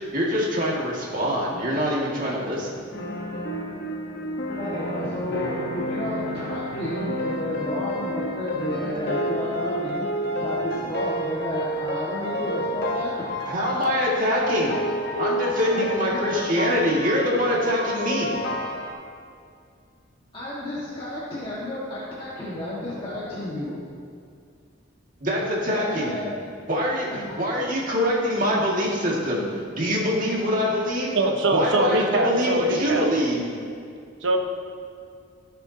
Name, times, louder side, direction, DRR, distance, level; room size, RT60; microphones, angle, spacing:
voice 1, 0.1-2.9 13.4-14.8 15.2-18.4 25.2-26.2 26.7-29.5 29.7-31.1 31.5-33.5, equal, 45° right, -4 dB, 2.0 m, -24 dB
sound 1, 2.9-18.9, equal, 55° left, 1.2 m, -29 dB
voice 2, 4.6-10.1 10.4-13.3 15.7-16.4 20.3-23.8 25.7-26.3 27.1-27.2 27.6-27.7 32.6-32.8, left 1 dB, 25° left, -9 dB, 1.6 m, -32 dB
voice 3, 31.1-33.1 34.2-34.4, right 2 dB, 70° right, 3 dB, 1.1 m, -23 dB
16.0 x 6.9 x 2.8 m, 2.4 s
head